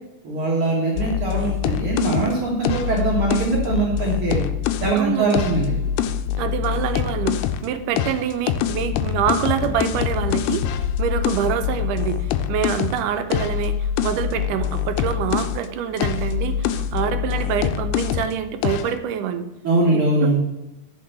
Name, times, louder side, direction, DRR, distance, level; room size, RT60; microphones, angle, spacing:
voice 1, 0.2-4.4 4.8-5.7 19.6-20.4, right 2 dB, 50° right, -4 dB, 2.2 m, -21 dB
sound 1, 1.0-4.9 5.3-7.7 8.0-15.6 16.0-18.3 18.6-18.9, left 9 dB, 85° left, 2.1 m, -24 dB
voice 2, 4.9-5.3 6.4-19.5 19.9-20.4, right 8 dB, 90° right, 8 dB, 2.4 m, -26 dB
9.4 x 5.4 x 6.8 m, 0.99 s
omnidirectional pair, 3.6 m